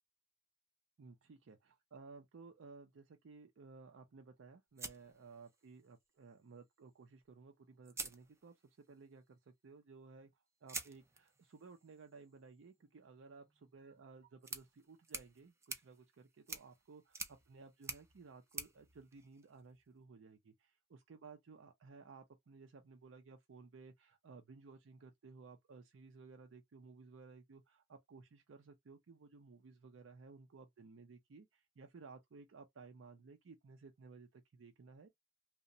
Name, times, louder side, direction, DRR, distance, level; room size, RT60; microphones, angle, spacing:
voice 1, 1.0-10.3 10.6-35.1, right 4 dB, 75° right, 0.5 m, -57 dB
sound 1, 4.8-5.9 7.2-7.3 7.8-8.9 10.7-19.9, right 3 dB, 15° right, 0.4 m, -50 dB
2.9 x 2.1 x 2.5 m
head